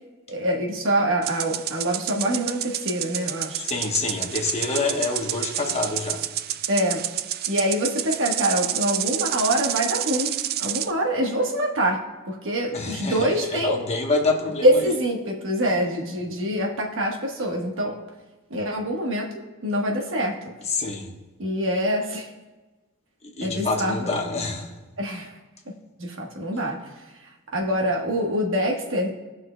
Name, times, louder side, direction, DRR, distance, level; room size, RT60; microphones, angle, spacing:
voice 1, 0.3-3.6 6.7-7.0 7.5-12.0 12.3-13.8 14.6-18.0 18.5-20.4 21.4-22.3 23.4-24.3 25.0-25.3 25.7-25.8 26.0-26.8 27.5-29.1, equal, 65° right, 0 dB, 1.3 m, -25 dB
sound 1, 1.2-10.9, right 12 dB, 45° right, 0.3 m, -29 dB
voice 2, 3.6-6.2 12.7-14.7 20.7-21.1 23.2-24.7, left 3 dB, 30° left, 2 dB, 1.1 m, -27 dB
18.0 x 6.1 x 2.2 m, 1.2 s
head